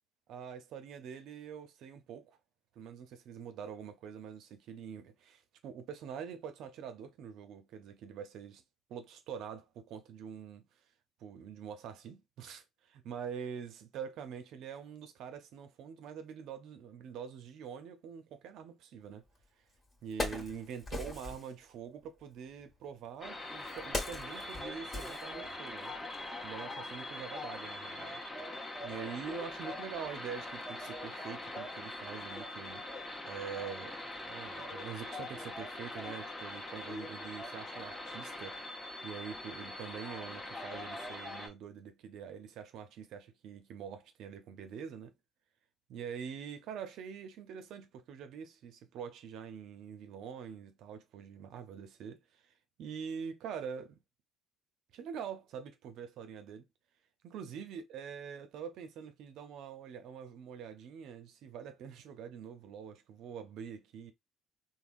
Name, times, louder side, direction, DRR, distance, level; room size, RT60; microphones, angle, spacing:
voice 1, 0.3-2.4 2.8-8.6 8.9-10.7 11.2-19.2 20.0-25.9 26.4-28.2 28.8-45.1 45.9-52.4 52.8-54.0 54.9-56.6 57.2-64.1, right 7 dB, 65° right, 0.6 m, -45 dB
Wood, 19.4-19.5 19.9-21.5 22.5-25.8 26.1-26.3, left 2 dB, 35° left, 1.3 m, -40 dB
sound 1, 23.2-41.5, left 1 dB, 15° left, 1.1 m, -42 dB
3.4 x 2.1 x 2.5 m
hypercardioid pair, 55°, 0 cm